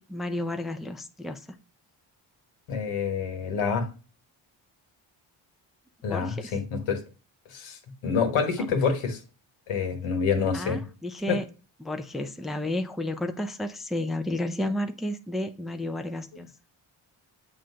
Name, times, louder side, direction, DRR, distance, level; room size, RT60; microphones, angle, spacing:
voice 1, 0.0-1.4 6.1-6.5 10.5-11.4 11.8-16.5, left 1 dB, ahead, 0.6 m, -32 dB
voice 2, 2.7-3.9 6.0-7.0 7.5-9.2 9.7-10.8 11.3-11.4, left 6 dB, 80° left, 1.4 m, -27 dB
7.5 x 2.5 x 5.6 m
supercardioid pair, 55°, 50 cm